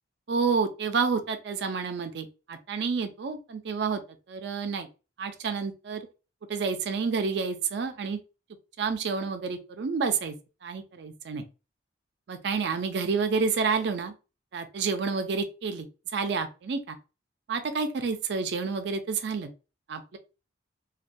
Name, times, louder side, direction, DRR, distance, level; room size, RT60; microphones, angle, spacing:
voice 1, 0.3-4.0 4.3-4.9 5.2-6.0 6.5-8.2 8.8-10.3 10.6-11.5 12.3-14.1 14.5-15.9 16.1-17.0 17.5-19.5 19.9-20.2, right 5 dB, 60° right, 0.4 m, -29 dB
2.3 x 2.1 x 2.5 m
head